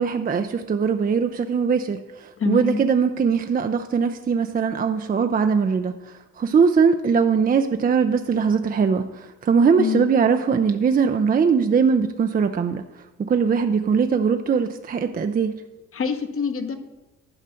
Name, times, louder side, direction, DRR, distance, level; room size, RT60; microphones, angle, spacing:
voice 1, 0.0-12.8 13.2-15.6, right 6 dB, 30° right, 7 dB, 0.5 m, -21 dB
voice 2, 2.4-2.8 9.8-10.1 15.9-16.8, left 5 dB, 45° left, 7 dB, 1.0 m, -25 dB
11.0 x 5.0 x 5.7 m, 1.1 s
cardioid pair, 90°, 30 cm